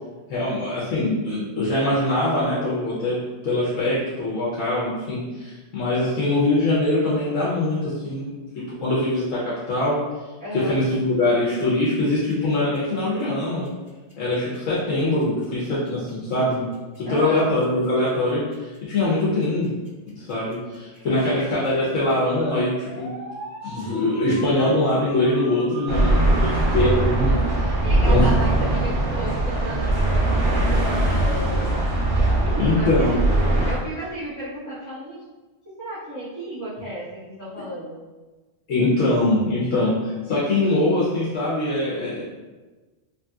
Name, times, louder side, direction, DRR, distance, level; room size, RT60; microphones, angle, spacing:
voice 1, 0.3-8.4 8.8-10.0 10.5-13.7 14.2-16.7 17.0-19.7 20.1-23.1 23.6-27.4 28.1-28.3 32.6-33.1 38.7-42.2, left 1 dB, 85° left, -8 dB, 1.1 m, -23 dB
voice 2, 10.4-10.8 17.0-17.4 20.9-21.6 27.6-31.7 32.1-33.2 33.5-35.2 35.8-38.0, right 1 dB, 15° right, -14 dB, 1.2 m, -34 dB
sound 1, 11.6-28.0, equal, 30° right, 1.4 m, -42 dB
sound 2, 25.9-33.7, right 1 dB, 80° right, 1.2 m, -21 dB
3.1 x 2.7 x 2.3 m, 1.2 s
omnidirectional pair, 1.3 m